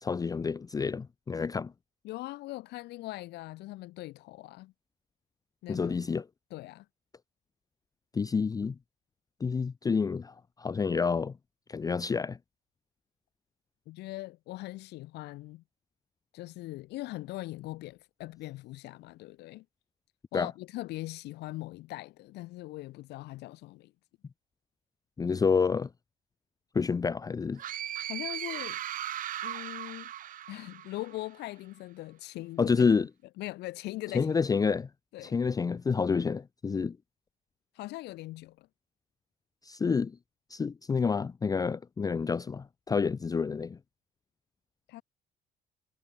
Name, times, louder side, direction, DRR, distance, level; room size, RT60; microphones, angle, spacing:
voice 1, 0.0-1.7 5.7-6.3 8.1-8.8 9.4-11.3 11.7-12.4 20.3-20.5 25.2-25.9 26.7-27.6 32.6-33.1 34.1-34.9 35.2-37.0 39.6-40.2 40.5-43.8, left 5 dB, 20° left, 0.5 m, -28 dB
voice 2, 2.0-4.7 5.6-6.0 6.5-6.8 13.9-15.6 16.3-19.6 20.3-23.9 28.1-28.8 29.4-30.1 30.5-32.9 33.4-34.4 35.1-35.4 37.7-38.7 44.9-45.0, left 18 dB, 80° left, 1.3 m, -41 dB
sound 1, 27.6-31.3, right 11 dB, 55° right, 0.9 m, -38 dB
cardioid pair, 110°, 17 cm